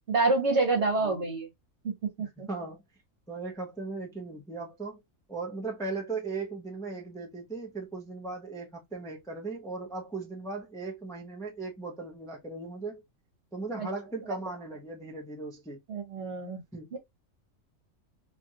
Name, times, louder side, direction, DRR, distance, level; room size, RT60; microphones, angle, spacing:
voice 1, 0.1-1.5 1.8-1.9 2.2-2.5 13.8-13.9 15.9-16.6 16.9-17.0, right 3 dB, 55° right, 1.4 m, -27 dB
voice 2, 2.2-2.8 3.3-5.0 5.3-13.0 13.5-15.8 16.7-16.9, right 3 dB, 5° left, 0.5 m, -38 dB
2.9 x 2.5 x 2.7 m
omnidirectional pair, 1.4 m